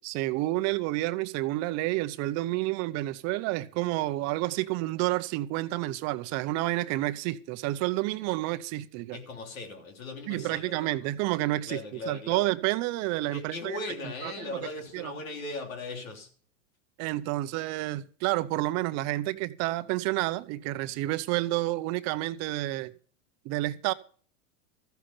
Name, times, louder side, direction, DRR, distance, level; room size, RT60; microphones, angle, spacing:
voice 1, 0.0-9.2 10.3-11.8 12.1-13.8 14.2-14.5 14.9-15.1 17.0-22.9 23.4-23.9, right 17 dB, 40° right, 0.8 m, -29 dB
voice 2, 9.1-11.0 11.7-12.5 13.3-16.3, left 2 dB, 90° left, 3.4 m, -39 dB
14.5 x 8.7 x 5.6 m
hypercardioid pair, 120°, 40 cm